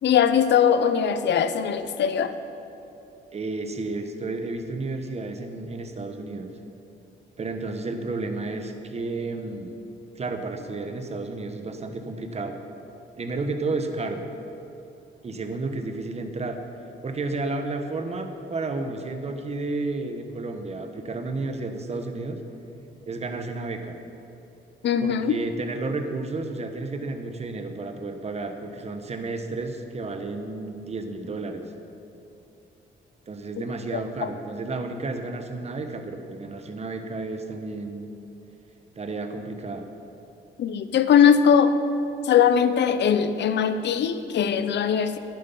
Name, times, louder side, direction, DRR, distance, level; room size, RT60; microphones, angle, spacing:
voice 1, 0.0-2.4 24.8-25.4 34.2-34.3 40.6-41.7 42.2-45.2, left 8 dB, 65° left, 11 dB, 0.7 m, -20 dB
voice 2, 3.3-6.5 7.4-9.7 10.1-12.6 13.2-14.2 15.2-16.6 17.0-22.4 23.1-24.0 25.0-31.7 33.3-38.1 39.0-39.8, right 3 dB, 30° right, 6 dB, 1.1 m, -32 dB
11.0 x 9.6 x 5.5 m, 2.8 s
cardioid pair, 90°, 20 cm